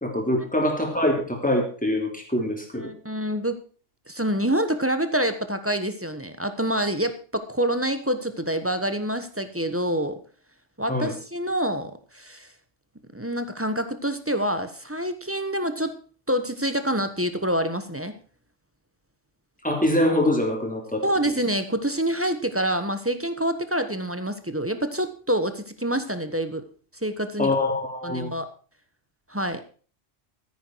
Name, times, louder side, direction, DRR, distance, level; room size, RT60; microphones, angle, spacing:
voice 1, 0.0-2.9 10.9-11.2 19.6-21.0 27.4-28.3, left 1 dB, 5° left, 1 dB, 3.5 m, -24 dB
voice 2, 2.7-3.6 4.1-10.2 10.8-12.5 13.1-15.9 16.3-18.1 21.0-26.6 27.0-27.5 28.0-28.5 29.3-29.6, right 1 dB, 10° right, 9 dB, 1.2 m, -26 dB
14.0 x 9.8 x 4.7 m, 0.40 s
omnidirectional pair, 1.3 m